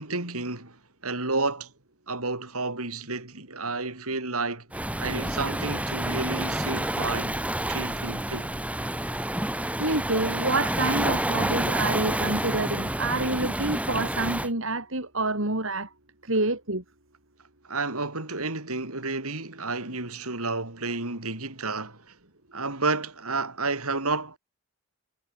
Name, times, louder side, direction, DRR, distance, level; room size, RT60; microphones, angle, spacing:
voice 1, 0.0-1.7 2.1-4.7 5.0-7.4 7.7-8.5 17.7-22.1 22.5-24.4, right 3 dB, 80° right, 5.7 m, -31 dB
Waves surf, 4.7-14.5, right 1 dB, 5° right, 3.7 m, -29 dB
voice 2, 9.8-15.9 16.2-16.8, right 2 dB, 60° right, 3.8 m, -27 dB
head